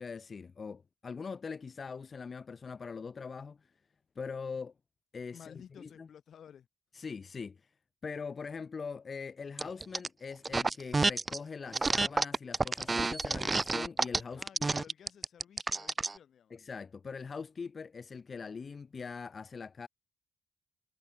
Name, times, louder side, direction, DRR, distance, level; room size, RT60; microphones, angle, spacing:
voice 1, 0.0-3.7 4.2-4.7 5.1-6.1 6.9-7.7 8.0-14.4 14.8-14.9 16.5-19.9, left 5 dB, 40° left, 3.5 m, -42 dB
voice 2, 5.3-6.7 14.4-16.6, left 8 dB, 65° left, 5.8 m, -54 dB
sound 1, 9.6-10.1 10.4-11.4 11.7-16.2, right 3 dB, 25° right, 0.5 m, -29 dB
cardioid pair, 75°, 0 cm